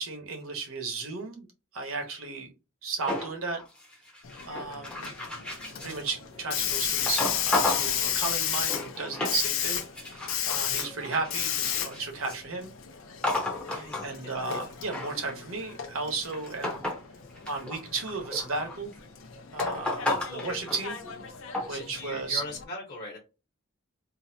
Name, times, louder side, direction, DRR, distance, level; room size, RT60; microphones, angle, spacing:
voice 1, 0.0-1.5 1.7-2.5 2.8-3.6 4.5-5.1 5.8-12.7 13.7-16.8 17.5-18.9 19.5-21.0 21.7-22.4, right 3 dB, 70° right, 2 dB, 1.1 m, -34 dB
sound 1, 3.1-6.1 7.1-7.9 8.4-9.4 9.7-12.4 13.2-14.1 14.6-17.1 17.4-18.9 19.6-21.2 21.5-21.8, left 2 dB, 5° left, 0.6 m, -33 dB
Hiss, 4.2-22.6, left 9 dB, 65° left, 0.6 m, -34 dB
voice 2, 13.6-14.7 20.1-20.5 21.7-23.2, left 2 dB, 40° left, -3 dB, 1.0 m, -41 dB
3.9 x 2.1 x 2.7 m, 0.29 s
head